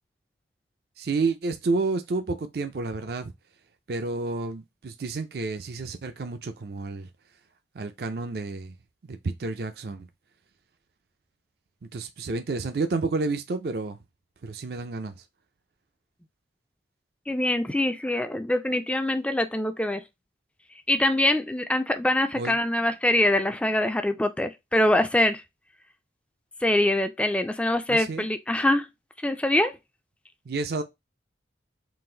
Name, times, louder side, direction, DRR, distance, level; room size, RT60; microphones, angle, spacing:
voice 1, 1.0-3.3 3.9-7.1 7.7-8.7 9.0-10.1 11.8-14.0 14.4-15.2 22.4-22.6 27.9-28.3 30.5-30.8, right 3 dB, 55° right, 0.4 m, -30 dB
voice 2, 17.3-20.0 20.9-25.4 26.6-28.9 29.2-29.8, left 1 dB, 5° left, 0.3 m, -24 dB
3.9 x 2.5 x 3.7 m
head